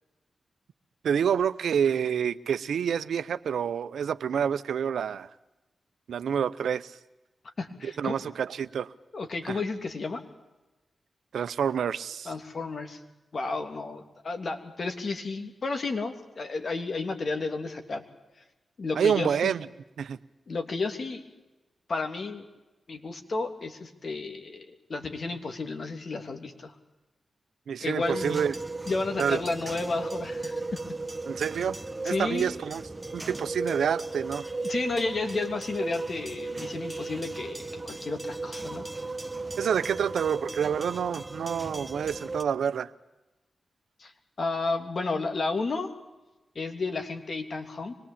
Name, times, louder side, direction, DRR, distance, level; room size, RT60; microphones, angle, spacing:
voice 1, 1.0-5.3 6.1-7.0 7.8-8.9 9.5-9.6 11.3-12.3 19.0-19.7 20.0-20.2 27.7-28.5 29.2-29.4 31.3-31.8 32.0-32.8 33.1-34.4 39.6-42.9, right 8 dB, 85° right, 14 dB, 0.8 m, -28 dB
voice 2, 7.4-8.2 9.1-10.2 12.2-13.0 13.3-18.0 18.8-19.5 20.5-21.2 21.9-22.5 22.9-26.7 27.8-28.4 28.9-30.8 32.0-32.5 34.6-38.9 44.0-44.1 44.4-45.9 46.5-47.9, left 3 dB, 60° left, 6 dB, 3.1 m, -32 dB
sound 1, 28.0-42.4, right 3 dB, 25° right, 1.4 m, -36 dB
25.0 x 19.5 x 8.7 m, 1.1 s
cardioid pair, 45°, 0 cm